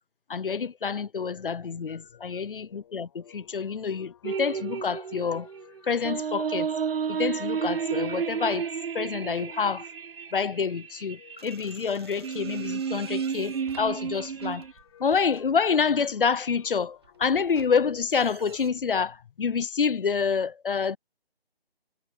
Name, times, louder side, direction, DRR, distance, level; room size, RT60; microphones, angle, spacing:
voice 1, 0.3-5.5 5.9-6.7 7.1-8.7 8.9-9.9 10.3-14.6 15.0-21.0, left 6 dB, 60° left, 0.6 m, -27 dB
sound 1, 1.3-19.4, left 10 dB, 30° left, 5.9 m, -57 dB
sound 2, 4.2-14.7, right 7 dB, 70° right, 0.5 m, -32 dB
sound 3, 11.4-16.0 16.5-18.7, right 9 dB, 25° right, 1.6 m, -50 dB
figure-of-eight pair, 150°, 31 cm